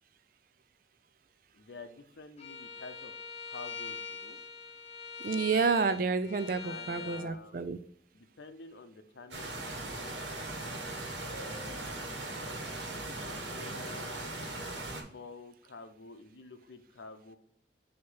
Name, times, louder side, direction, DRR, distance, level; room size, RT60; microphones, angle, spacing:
voice 1, 1.5-3.1 3.5-4.4 6.6-7.6 8.1-10.1 11.2-12.2 12.9-14.3 14.7-17.4, left 3 dB, 75° left, 8 dB, 0.7 m, -49 dB
Bowed string instrument, 2.4-7.3, left 5 dB, 35° left, 1.0 m, -43 dB
voice 2, 5.2-7.8, right 4 dB, 50° right, 13 dB, 0.4 m, -29 dB
sound 1, 9.3-15.0, right 2 dB, 85° right, 1.4 m, -39 dB
6.3 x 2.9 x 5.6 m, 0.66 s
head